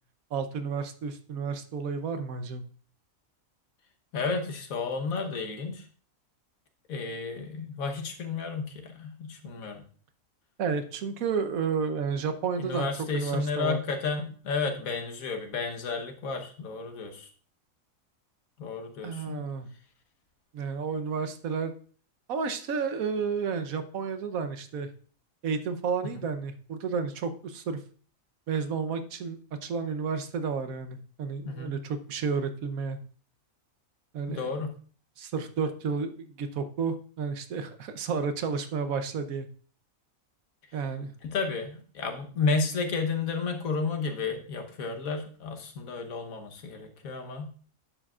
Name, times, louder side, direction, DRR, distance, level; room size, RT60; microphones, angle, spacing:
voice 1, 0.3-2.7 10.6-12.9 13.1-13.8 19.0-19.7 20.5-21.7 22.3-24.9 25.4-27.8 28.5-33.0 34.1-34.5 35.2-39.5 40.7-41.1, right 5 dB, 85° right, 9 dB, 1.3 m, -31 dB
voice 2, 4.1-5.8 6.9-9.8 12.6-17.3 18.6-19.4 31.4-31.8 34.3-34.7 41.2-47.5, left 4 dB, 85° left, 5 dB, 1.5 m, -32 dB
10.5 x 7.3 x 2.4 m, 0.43 s
omnidirectional pair, 1.4 m